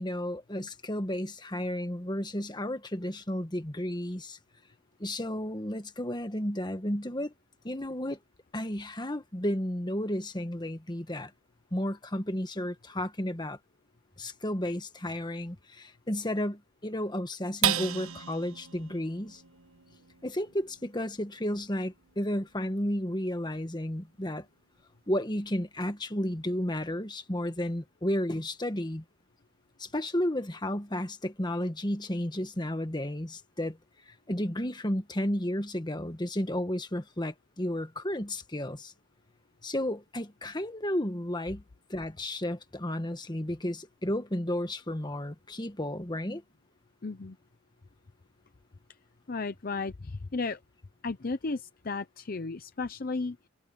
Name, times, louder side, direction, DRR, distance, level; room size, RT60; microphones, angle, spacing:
voice 1, 0.0-4.4 5.0-7.3 7.6-8.2 8.5-11.3 11.7-13.6 14.2-19.4 20.2-24.5 25.1-29.0 29.8-33.8 34.1-38.9 39.6-41.6 41.9-46.4, left 1 dB, 20° left, 1.5 m, -32 dB
sound 1, 17.6-24.3 24.8-24.9 25.3-25.8, right 9 dB, 85° right, 1.4 m, -37 dB
voice 2, 47.0-47.4 49.3-50.6 51.0-53.5, left 3 dB, 45° left, 0.6 m, -34 dB
head